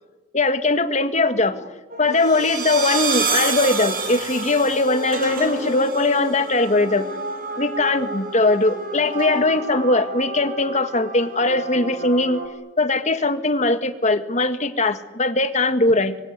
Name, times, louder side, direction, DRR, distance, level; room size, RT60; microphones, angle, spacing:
voice 1, 0.3-1.7 2.0-7.1 7.6-12.4 12.8-16.2, left 2 dB, 35° left, 9 dB, 1.8 m, -20 dB
sound 1, 1.9-12.5, right 3 dB, 45° right, 4.9 m, -29 dB
25.5 x 23.0 x 9.7 m, 1.1 s
head